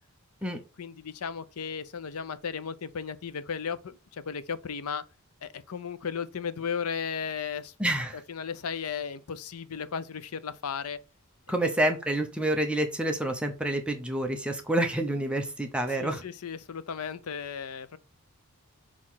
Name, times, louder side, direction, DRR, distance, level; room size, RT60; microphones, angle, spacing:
voice 1, 0.8-5.0 5.4-7.7 8.3-11.0 11.6-11.8 16.0-18.0, left 6 dB, 75° left, 0.6 m, -35 dB
voice 2, 7.8-8.2 11.5-16.2, right 1 dB, 5° right, 0.8 m, -28 dB
6.4 x 3.1 x 5.7 m
head